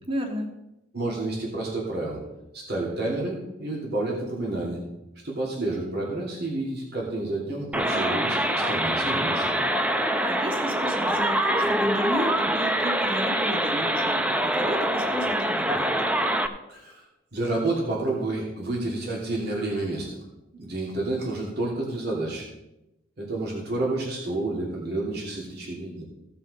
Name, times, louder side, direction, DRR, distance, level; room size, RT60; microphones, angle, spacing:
voice 1, 0.1-0.5 7.9-8.2 9.9-16.0, equal, 30° right, 3 dB, 1.7 m, -33 dB
voice 2, 0.9-2.2 2.5-4.8 5.2-9.6 16.7-17.0 17.3-20.2 20.5-22.5 23.2-26.0, right 2 dB, 60° right, -4 dB, 2.8 m, -30 dB
sound 1, 7.7-16.5, right 1 dB, 5° right, 0.6 m, -25 dB
16.0 x 5.7 x 5.0 m, 0.92 s
head